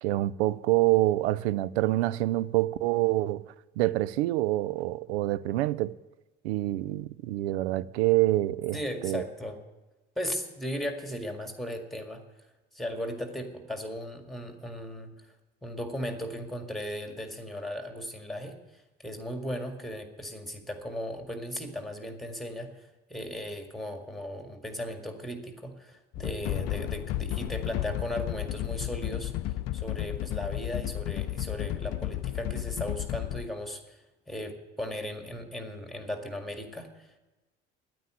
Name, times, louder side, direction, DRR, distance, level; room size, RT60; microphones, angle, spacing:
voice 1, 0.0-3.4 3.8-5.9 6.4-8.8 9.0-9.2, right 16 dB, 65° right, 0.5 m, -26 dB
voice 2, 8.7-9.6 10.2-12.2 12.7-15.1 15.6-37.2, equal, ahead, 1.9 m, -37 dB
sound 1, 26.1-33.5, left 14 dB, 45° left, 0.5 m, -33 dB
10.0 x 9.1 x 9.0 m
figure-of-eight pair, 55°, 35 cm